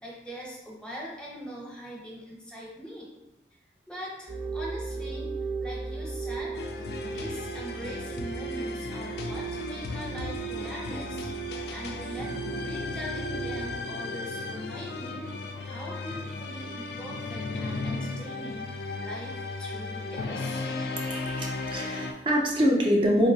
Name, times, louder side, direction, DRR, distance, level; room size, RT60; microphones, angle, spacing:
voice 1, 0.0-3.1 3.9-5.3 5.6-6.6 7.0-12.3 12.6-18.7 19.0-20.6, equal, 5° left, -4 dB, 0.7 m, -42 dB
sound 1, 4.3-13.8, right 5 dB, 85° right, 0.7 m, -36 dB
sound 2, 6.5-22.1, left 3 dB, 65° left, 0.3 m, -35 dB
voice 2, 21.0-23.3, equal, 30° right, -1 dB, 0.4 m, -25 dB
3.8 x 2.9 x 2.7 m, 0.96 s
head